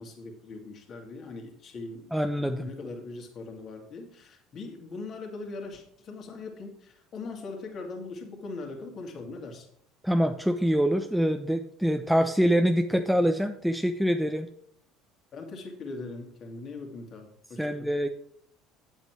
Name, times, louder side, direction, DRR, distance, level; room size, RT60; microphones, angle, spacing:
voice 1, 0.0-9.7 15.3-17.9, left 3 dB, 45° left, 2 dB, 2.5 m, -41 dB
voice 2, 2.1-2.7 10.0-14.5 17.6-18.1, equal, ahead, 6 dB, 0.7 m, -25 dB
9.3 x 8.0 x 4.6 m, 0.68 s
hypercardioid pair, 70°, 0 cm